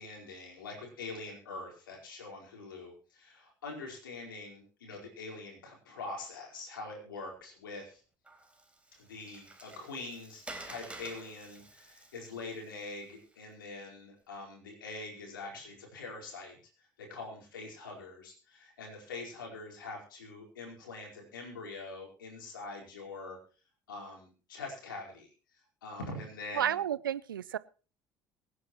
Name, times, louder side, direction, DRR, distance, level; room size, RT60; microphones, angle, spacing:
voice 1, 0.0-8.0 9.0-23.4 23.9-25.3 25.8-26.7, left 3 dB, 85° left, 0 dB, 4.6 m, -44 dB
Water, 8.2-13.6, right 2 dB, 10° right, 3.7 m, -50 dB
voice 2, 26.5-27.6, right 10 dB, 85° right, 19 dB, 0.5 m, -31 dB
24.0 x 9.7 x 3.1 m, 0.36 s
hypercardioid pair, 60°, 11 cm